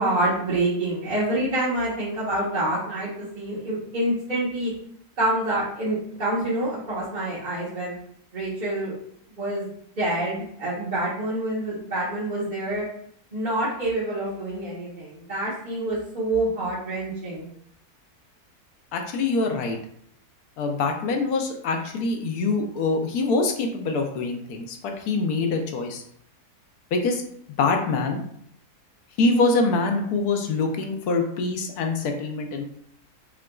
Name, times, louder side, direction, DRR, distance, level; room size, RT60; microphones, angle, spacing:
voice 1, 0.0-4.7 5.2-8.0 8.3-8.9 9.4-9.7 10.0-12.8 13.3-17.4, right 1 dB, 35° right, -9 dB, 1.0 m, -27 dB
voice 2, 18.9-19.8 20.6-26.0 26.9-27.2 27.6-28.2 29.2-32.6, left 3 dB, 80° left, 3 dB, 1.1 m, -24 dB
5.7 x 2.5 x 2.3 m, 0.66 s
omnidirectional pair, 1.7 m